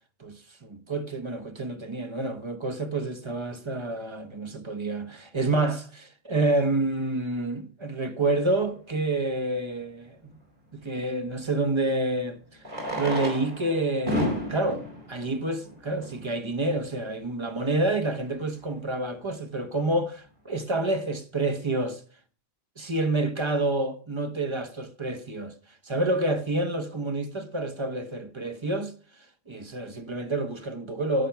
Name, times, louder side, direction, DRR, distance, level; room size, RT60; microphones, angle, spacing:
voice 1, 0.2-10.4 10.7-22.0 22.8-25.5 25.8-31.3, right 2 dB, 30° right, 1.1 m, -28 dB
Fireworks, 9.0-9.1 11.4-11.5 12.6-16.3 17.1-17.2 17.4-17.5 17.7-17.8 18.3-18.5, equal, 50° right, 4.4 m, -32 dB
16.0 x 7.6 x 5.8 m
omnidirectional pair, 1.1 m